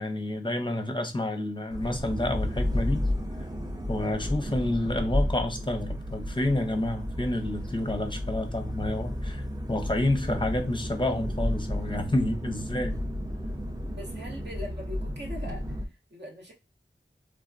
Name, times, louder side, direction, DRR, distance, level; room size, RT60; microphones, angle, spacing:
voice 1, 0.0-3.1 3.9-13.0, left 1 dB, 25° left, 0.6 m, -29 dB
sound 1, 1.7-15.9, left 1 dB, 15° right, 0.5 m, -32 dB
voice 2, 13.9-16.5, left 1 dB, 55° right, 0.9 m, -41 dB
3.4 x 2.1 x 2.5 m
wide cardioid pair, 50°, 21 cm